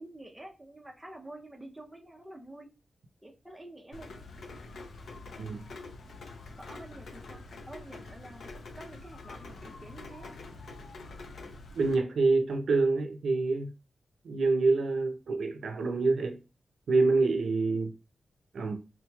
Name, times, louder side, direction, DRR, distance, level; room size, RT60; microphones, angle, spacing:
voice 1, 0.0-2.7 3.2-4.1 6.6-10.4 17.6-17.9, right 1 dB, 10° right, 0.6 m, -48 dB
Rain, 3.9-11.9, left 3 dB, 80° left, 0.6 m, -46 dB
voice 2, 11.7-13.7 14.2-16.4 16.9-17.9 18.5-18.7, right 3 dB, 85° right, 0.5 m, -26 dB
3.9 x 2.9 x 2.3 m
wide cardioid pair, 105°, 0 cm